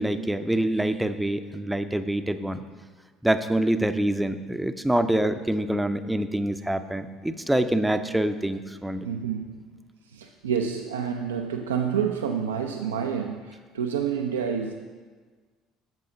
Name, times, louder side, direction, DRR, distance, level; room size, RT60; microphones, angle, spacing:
voice 1, 0.0-2.6 3.2-9.1, right 1 dB, 5° right, 10 dB, 0.6 m, -25 dB
voice 2, 9.0-9.6 10.0-14.7, right 7 dB, 75° right, 4 dB, 0.4 m, -28 dB
10.5 x 7.6 x 3.9 m, 1.5 s
figure-of-eight pair, 60°, 0 cm